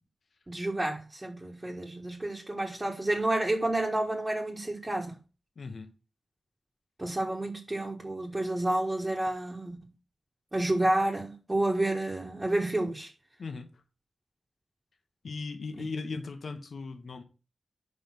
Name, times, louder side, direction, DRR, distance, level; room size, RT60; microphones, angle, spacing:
voice 1, 0.5-5.2 7.0-9.9 10.5-13.1 15.8-15.9, right 1 dB, 20° right, 1.5 m, -30 dB
voice 2, 5.6-5.9 13.4-13.7 15.2-17.2, left 4 dB, 70° left, 1.3 m, -38 dB
6.3 x 5.4 x 6.0 m
wide cardioid pair, 110°, 0 cm